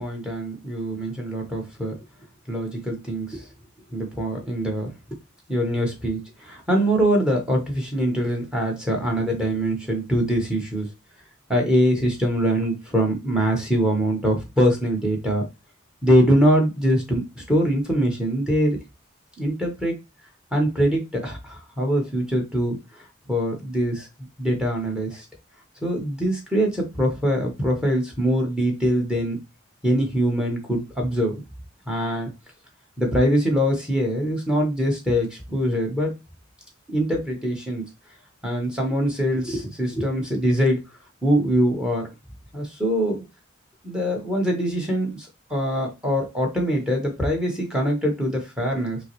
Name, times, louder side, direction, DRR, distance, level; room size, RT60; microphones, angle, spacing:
voice 1, 0.0-2.0 2.5-3.5 3.9-4.9 5.5-10.9 11.5-15.4 16.0-18.8 19.4-19.9 20.5-22.8 23.3-24.1 24.4-25.2 25.8-29.4 29.8-31.4 31.9-32.3 33.0-36.1 36.9-37.8 38.4-40.8 41.2-42.1 42.5-43.2 43.8-49.0, equal, 5° right, 1 dB, 1.0 m, -23 dB
5.5 x 2.0 x 2.9 m, 0.25 s
head